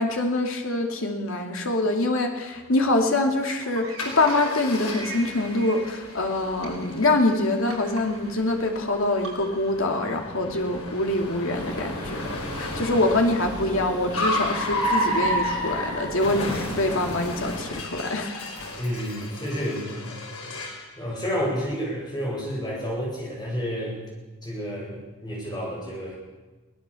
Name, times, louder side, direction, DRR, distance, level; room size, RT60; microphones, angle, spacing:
voice 1, 0.0-12.3 12.6-18.4, left 2 dB, 70° left, 2 dB, 2.6 m, -25 dB
sound 1, 2.5-9.8, right 3 dB, 75° right, 5.4 m, -42 dB
Car, 4.0-20.9, left 1 dB, 90° left, 5.5 m, -32 dB
sound 2, 11.5-17.8, right 1 dB, 20° right, 1.6 m, -38 dB
voice 2, 18.8-24.0 24.4-26.1, equal, 20° left, -3 dB, 7.5 m, -30 dB
23.5 x 17.0 x 7.1 m, 1.2 s
head